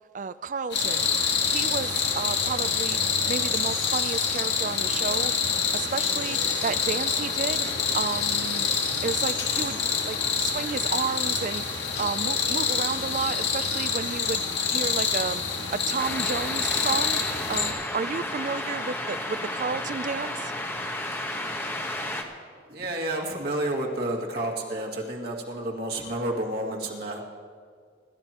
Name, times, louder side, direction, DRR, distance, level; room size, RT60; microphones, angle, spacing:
voice 1, 0.1-1.1 1.5-3.0 3.3-5.3 5.7-7.7 7.9-8.7 9.0-9.8 10.1-11.6 12.0-14.4 14.7-15.4 15.7-17.2 17.5-20.5, right 5 dB, 45° right, 14 dB, 0.4 m, -31 dB
sound 1, 0.7-17.7, left 6 dB, 70° left, 1.9 m, -26 dB
sound 2, 16.0-22.2, left 1 dB, 10° left, 1.1 m, -32 dB
voice 2, 22.7-27.2, right 1 dB, 60° right, -1 dB, 2.2 m, -30 dB
26.0 x 13.0 x 3.0 m, 2.1 s
head